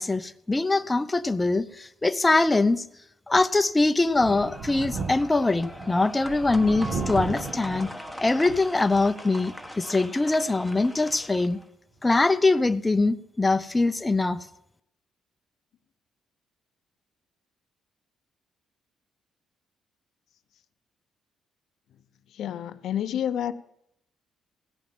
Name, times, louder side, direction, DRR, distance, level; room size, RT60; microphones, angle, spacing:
voice 1, 0.0-2.8 3.3-7.9 8.2-11.6 12.0-14.5, left 2 dB, 15° left, 0.6 m, -23 dB
Thunder, 4.1-9.2 9.6-9.7 11.1-11.2, right 4 dB, 60° right, 1.4 m, -36 dB
sound 1, 4.3-11.6, equal, 5° right, 1.2 m, -41 dB
voice 2, 22.3-23.5, left 10 dB, 75° left, 0.6 m, -29 dB
17.0 x 5.7 x 9.0 m
cardioid pair, 90°, 0 cm